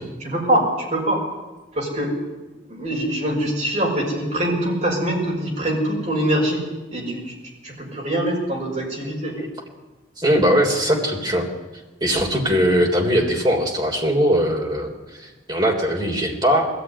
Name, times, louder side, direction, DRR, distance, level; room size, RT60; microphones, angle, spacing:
voice 1, 0.2-1.2 1.7-2.2 2.7-7.3 7.6-9.4, right 1 dB, 40° right, -1 dB, 5.9 m, -23 dB
voice 2, 10.2-11.5 12.0-16.7, equal, 25° right, 1 dB, 3.6 m, -20 dB
20.5 x 14.5 x 9.7 m, 1.2 s
head